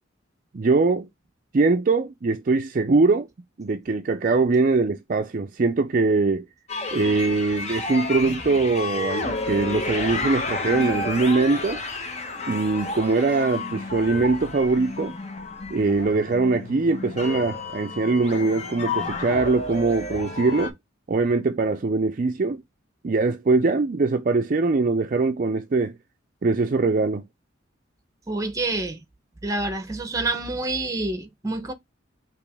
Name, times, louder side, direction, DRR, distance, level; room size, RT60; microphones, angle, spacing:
voice 1, 0.5-1.1 1.5-3.3 3.6-6.4 6.9-11.8 12.5-15.1 15.7-20.7 21.1-22.6 23.0-25.9 26.4-27.3, right 3 dB, 45° right, 0.4 m, -22 dB
sound 1, 6.7-20.7, left 3 dB, 35° left, 0.9 m, -31 dB
voice 2, 28.3-29.0 29.4-31.7, right 2 dB, 15° right, 0.8 m, -27 dB
5.0 x 3.0 x 3.4 m
head